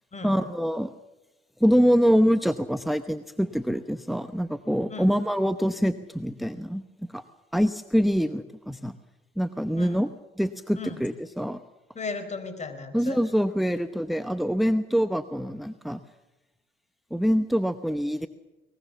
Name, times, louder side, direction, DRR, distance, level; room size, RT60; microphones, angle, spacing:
voice 1, 0.2-0.9 1.6-6.8 7.1-7.2 7.5-8.9 9.4-10.1 10.4-11.6 12.9-16.0 17.1-18.3, equal, ahead, 11 dB, 0.9 m, -25 dB
voice 2, 11.9-13.2, left 4 dB, 35° left, 10 dB, 4.5 m, -36 dB
23.0 x 20.5 x 7.0 m, 1.0 s
cardioid pair, 90°, 20 cm